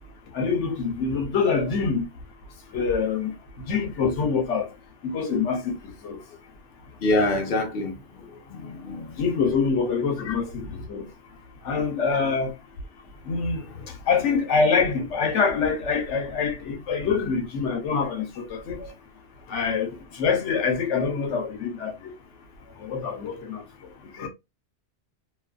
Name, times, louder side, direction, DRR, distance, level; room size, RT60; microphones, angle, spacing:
voice 1, 0.3-2.1 2.7-3.3 3.7-4.7 5.0-5.8 6.0-6.2 9.2-11.0 11.6-12.5 13.3-13.6 14.1-18.8 19.5-19.9 20.1-21.9 22.8-23.6 24.2-24.3, left 5 dB, 80° left, 1.0 m, -25 dB
voice 2, 7.0-7.9 8.5-9.1 10.2-10.4 12.1-12.2 17.1-17.2 18.8-18.9 24.2-24.3, left 2 dB, 60° left, 0.8 m, -26 dB
2.5 x 2.4 x 2.2 m
omnidirectional pair, 1.2 m